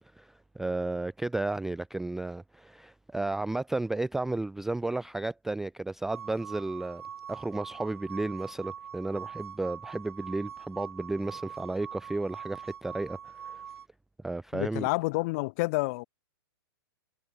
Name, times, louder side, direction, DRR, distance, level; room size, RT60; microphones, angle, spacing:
voice 1, 0.2-7.0 7.3-13.6 14.2-14.9, right 2 dB, 5° right, 0.3 m, -33 dB
sound 1, 6.1-13.9, right 8 dB, 85° right, 5.5 m, -43 dB
voice 2, 14.5-16.0, left 25 dB, 40° left, 2.6 m, -29 dB
hypercardioid pair, 155°, 13 cm